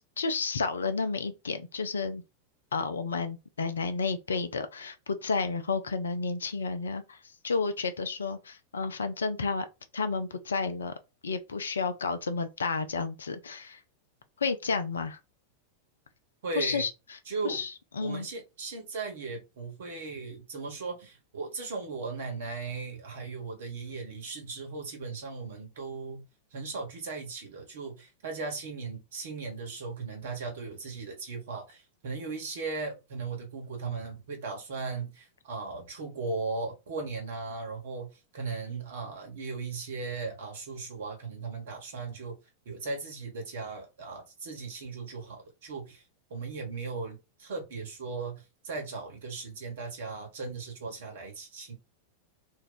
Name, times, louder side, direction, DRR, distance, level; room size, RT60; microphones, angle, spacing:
voice 1, 0.2-2.2 2.7-7.2 7.4-9.7 9.9-10.9 11.2-13.8 14.4-15.2 16.6-16.9 17.4-18.3, left 4 dB, 70° left, 0.4 m, -31 dB
voice 2, 16.4-16.9 17.2-17.6 18.0-26.2 26.5-42.4 42.6-46.0 46.3-51.8, right 4 dB, 60° right, 1.2 m, -37 dB
2.6 x 2.3 x 3.8 m
figure-of-eight pair, 90°, 0 cm